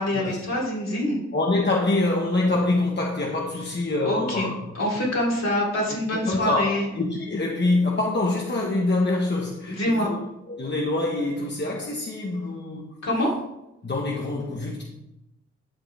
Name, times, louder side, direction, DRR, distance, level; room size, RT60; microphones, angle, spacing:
voice 1, 0.0-1.2 4.0-4.5 4.7-6.8 9.7-10.1 13.0-13.3, left 1 dB, 65° left, -4 dB, 3.4 m, -25 dB
voice 2, 1.3-4.6 5.9-10.2 10.5-13.0 13.8-14.8, left 2 dB, 40° left, -1 dB, 1.3 m, -25 dB
10.5 x 7.0 x 3.4 m, 0.88 s
cardioid pair, 75°, 29 cm